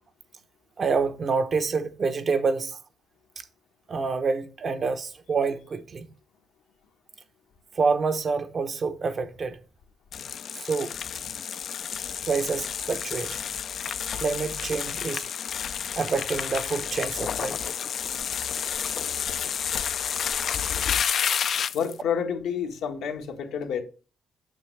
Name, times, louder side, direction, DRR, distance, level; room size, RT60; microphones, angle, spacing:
voice 1, 0.8-2.8 3.9-6.1 7.8-9.6 10.6-10.9 12.3-13.4 14.2-15.2 16.0-17.6, right 4 dB, 40° right, 0.8 m, -27 dB
sound 1, 10.1-22.0, left 8 dB, 55° left, 0.3 m, -30 dB
voice 2, 21.7-23.8, left 7 dB, 90° left, 1.3 m, -29 dB
8.6 x 6.2 x 3.2 m
cardioid pair, 120°, 0 cm